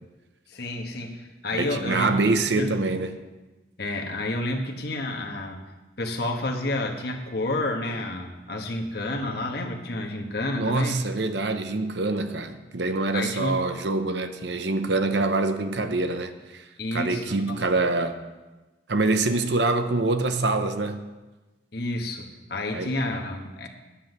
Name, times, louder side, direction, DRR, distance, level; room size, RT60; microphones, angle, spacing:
voice 1, 0.5-2.2 2.5-2.7 3.8-5.7 6.0-11.0 13.1-13.6 16.8-17.6 21.7-23.7, left 1 dB, 55° left, 2 dB, 1.3 m, -30 dB
voice 2, 1.5-3.1 10.6-18.2 18.9-21.0 22.7-22.9, right 3 dB, 65° right, 8 dB, 0.8 m, -25 dB
10.0 x 7.8 x 6.7 m, 1.2 s
head